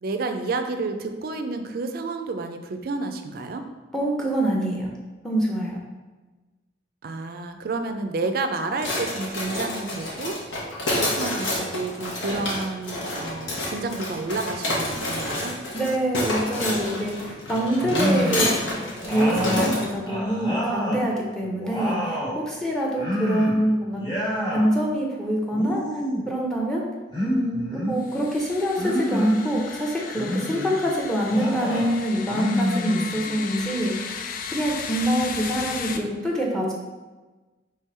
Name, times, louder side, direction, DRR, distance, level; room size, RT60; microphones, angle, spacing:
voice 1, 0.0-3.6 7.0-10.4 10.9-15.6 17.9-18.5, right 3 dB, 50° right, 7 dB, 0.4 m, -30 dB
voice 2, 3.9-4.9 5.2-5.8 15.7-18.5 19.0-24.0 24.5-26.8 27.2-34.1 34.5-36.7, equal, 5° left, -2 dB, 0.6 m, -25 dB
sound 1, 8.8-19.9, left 1 dB, 85° left, 1.1 m, -29 dB
sound 2, 17.8-18.6 19.1-21.0 21.4-22.4 23.0-23.6 23.9-24.7 25.5-26.3 27.1-28.0 28.8-29.5 30.1-30.8 31.3-31.9 32.3-33.4, equal, 30° left, 1.3 m, -27 dB
sound 3, 28.0-36.0, left 6 dB, 45° left, 0.3 m, -36 dB
3.7 x 3.3 x 4.2 m, 1.2 s
head